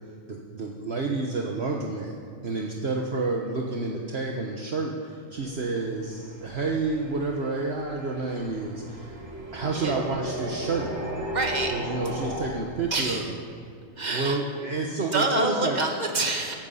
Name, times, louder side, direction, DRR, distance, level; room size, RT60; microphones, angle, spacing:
voice 1, 0.3-2.1 2.4-9.2 9.5-10.9 11.7-13.2 14.0-15.8, right 3 dB, 50° right, 0 dB, 1.4 m, -29 dB
sound 1, 5.4-12.5, equal, 75° right, 2.7 m, -36 dB
voice 2, 11.3-11.7 12.9-13.3 14.0-14.4 15.1-16.5, right 2 dB, 35° right, 2 dB, 1.8 m, -27 dB
16.0 x 14.5 x 5.6 m, 2.4 s
omnidirectional pair, 1.4 m